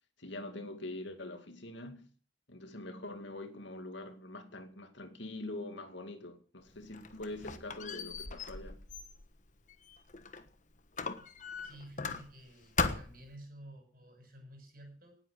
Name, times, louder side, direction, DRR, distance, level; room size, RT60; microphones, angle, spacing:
voice 1, 0.2-2.1 2.5-8.8, left 2 dB, 80° left, 2.4 m, -44 dB
Squeak, 6.7-10.5 11.0-12.5 12.8-13.3, left 4 dB, 40° left, 1.2 m, -38 dB
voice 2, 11.6-15.2, right 1 dB, 50° right, 7.1 m, -52 dB
18.5 x 8.4 x 6.4 m
head